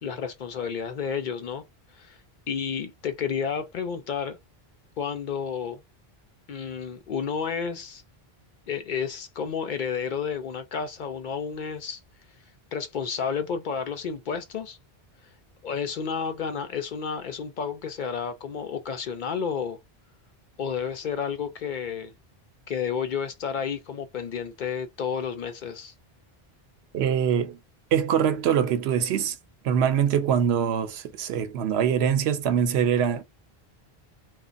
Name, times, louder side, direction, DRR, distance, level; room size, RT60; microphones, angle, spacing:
voice 1, 0.0-1.6 1.9-2.2 2.5-4.4 5.0-5.8 6.5-8.0 8.7-12.0 12.7-14.8 15.6-19.8 20.6-22.1 22.7-25.9, left 6 dB, 60° left, 0.6 m, -31 dB
voice 2, 26.9-27.6 27.9-29.4 29.6-33.2, right 8 dB, 85° right, 0.9 m, -23 dB
3.0 x 2.2 x 2.5 m
omnidirectional pair, 1.0 m